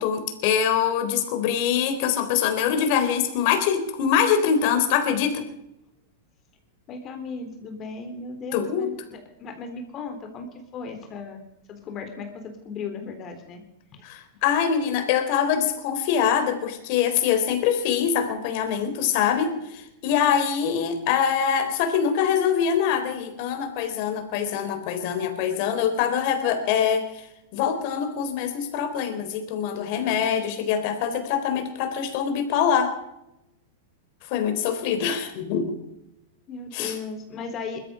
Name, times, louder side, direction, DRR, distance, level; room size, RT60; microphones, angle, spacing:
voice 1, 0.0-5.5 8.5-8.9 14.0-27.3 27.5-33.0 34.3-35.8 36.7-36.9, left 8 dB, 55° left, 7 dB, 3.8 m, -24 dB
voice 2, 6.9-11.4 11.7-13.6 13.9-14.0 36.5-37.8, left 4 dB, 35° left, 5 dB, 3.6 m, -36 dB
20.5 x 14.0 x 5.0 m, 0.86 s
hypercardioid pair, 125°, 0 cm